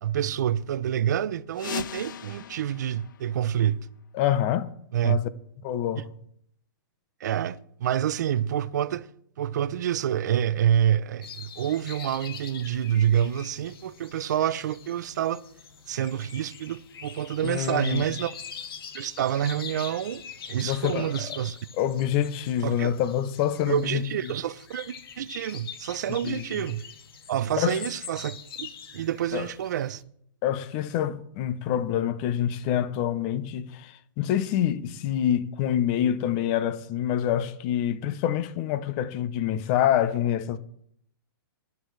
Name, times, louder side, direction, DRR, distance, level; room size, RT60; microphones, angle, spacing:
voice 1, 0.0-3.9 4.9-5.2 6.0-6.1 7.2-9.1 9.4-15.4 15.9-18.3 18.9-21.6 22.6-22.9 23.7-26.8 27.3-30.0, right 10 dB, 50° right, 0.6 m, -27 dB
sound 1, 1.5-4.1, left 9 dB, 55° left, 0.7 m, -39 dB
voice 2, 4.1-4.7 5.0-5.3 5.6-6.1 17.4-18.1 20.6-21.4 21.8-24.0 26.2-26.6 27.6-27.8 29.3-29.5 30.4-40.6, left 10 dB, 25° left, 0.7 m, -26 dB
sound 2, 11.2-30.0, left 6 dB, 75° left, 2.4 m, -44 dB
21.0 x 12.0 x 3.2 m
hypercardioid pair, 170°, 12 cm